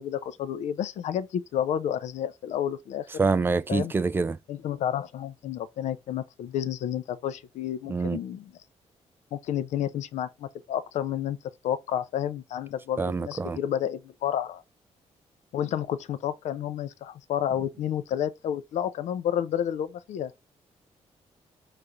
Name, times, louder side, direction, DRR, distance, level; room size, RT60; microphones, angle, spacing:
voice 1, 0.0-3.1 3.7-3.9 4.5-8.5 9.3-11.4 11.6-14.6 15.5-20.3, left 10 dB, 85° left, 0.5 m, -30 dB
voice 2, 3.2-4.4 7.9-8.2 13.0-13.6, right 4 dB, 20° right, 0.3 m, -26 dB
4.8 x 3.3 x 2.6 m
cardioid pair, 130°, 12 cm